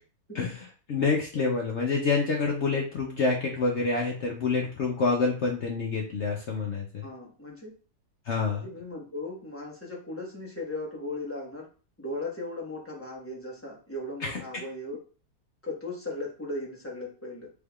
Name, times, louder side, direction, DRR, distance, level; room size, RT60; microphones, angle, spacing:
voice 1, 0.3-7.1 8.3-8.7 14.2-14.4, left 4 dB, 60° left, -1 dB, 0.7 m, -27 dB
voice 2, 7.0-7.7 8.6-11.7 12.0-15.0 15.6-17.5, left 2 dB, 10° left, -4 dB, 0.9 m, -37 dB
4.6 x 3.4 x 2.3 m, 0.37 s
omnidirectional pair, 1.8 m